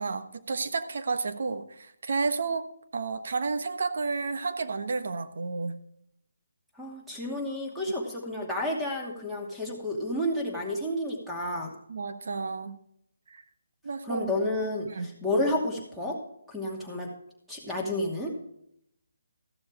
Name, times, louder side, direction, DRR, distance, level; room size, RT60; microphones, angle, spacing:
voice 1, 0.0-2.7 2.9-5.8 11.9-12.8 13.3-13.4 13.8-14.2 14.9-15.2, right 4 dB, 60° right, 9 dB, 1.2 m, -31 dB
voice 2, 6.8-11.7 14.0-16.2 16.5-17.1 17.5-18.3, left 1 dB, ahead, -2 dB, 2.5 m, -31 dB
15.0 x 7.1 x 5.0 m, 0.74 s
hypercardioid pair, 155°, 0 cm